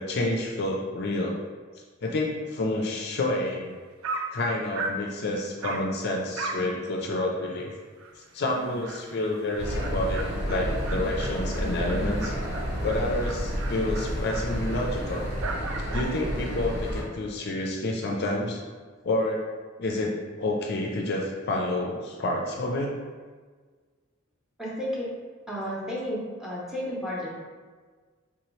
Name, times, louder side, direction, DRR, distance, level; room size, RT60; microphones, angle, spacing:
voice 1, 0.0-1.4 2.0-3.7 4.3-7.7 8.2-12.3 12.8-15.2 15.9-18.6 19.0-19.4 19.8-22.9, left 2 dB, 50° left, 0 dB, 0.4 m, -29 dB
Dog, 3.7-3.8 4.0-4.4 4.8-5.1 5.6-5.9 6.4-6.7 7.0-7.1 7.5-7.6 8.0-8.1 8.4-16.2, right 3 dB, 70° right, 0.4 m, -37 dB
sound 1, 9.6-17.0, equal, 50° right, 1.3 m, -30 dB
voice 2, 24.6-25.1 25.5-27.3, equal, ahead, -6 dB, 0.7 m, -32 dB
3.6 x 2.8 x 3.0 m, 1.5 s
head